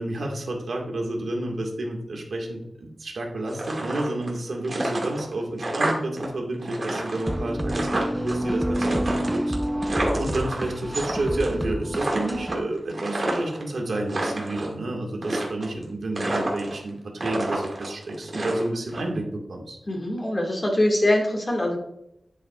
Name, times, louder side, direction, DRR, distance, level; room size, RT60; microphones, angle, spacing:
voice 1, 0.0-17.0 17.2-19.8, right 2 dB, 80° right, 0 dB, 1.9 m, -30 dB
sound 1, 3.5-4.4 4.6-6.3 6.5-8.3 8.7-11.1 11.4-11.7 11.9-13.6 14.0-14.7 15.2-15.8 16.2-16.9 17.2-19.0, right 1 dB, 50° right, 2.1 m, -29 dB
sound 2, 7.3-12.6, right 1 dB, 15° right, 0.8 m, -28 dB
voice 2, 19.9-21.8, left 1 dB, 30° left, 0 dB, 2.1 m, -23 dB
9.5 x 8.4 x 2.5 m, 0.80 s
wide cardioid pair, 95°, 0 cm